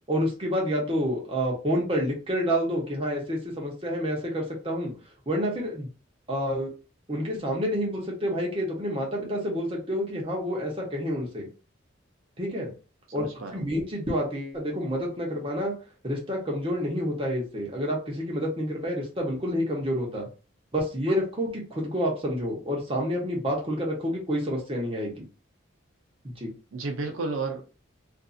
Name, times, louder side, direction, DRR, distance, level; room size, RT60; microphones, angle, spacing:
voice 1, 0.1-4.9 5.3-5.9 6.3-6.7 7.1-11.5 12.4-12.7 13.1-13.3 13.5-15.7 16.0-20.3 20.7-25.2 26.2-26.5, equal, 30° right, -2 dB, 0.9 m, -28 dB
voice 2, 13.2-13.7 26.7-27.7, right 3 dB, 85° right, 3 dB, 0.6 m, -32 dB
2.6 x 2.5 x 2.4 m, 0.34 s
head